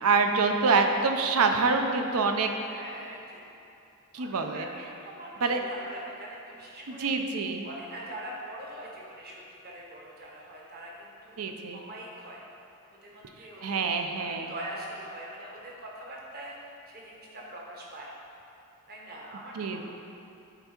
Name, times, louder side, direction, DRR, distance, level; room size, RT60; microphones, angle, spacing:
voice 1, 0.0-2.5 4.1-4.7 5.4-5.6 6.9-7.6 11.4-11.8 13.6-14.5 19.5-19.8, right 4 dB, 80° right, 5 dB, 0.5 m, -26 dB
voice 2, 2.6-3.4 4.2-7.1 7.6-11.4 11.7-12.4 12.9-13.8 14.2-18.1 18.9-19.8, right 1 dB, 45° right, -3 dB, 1.2 m, -43 dB
9.1 x 3.5 x 4.3 m, 2.7 s
head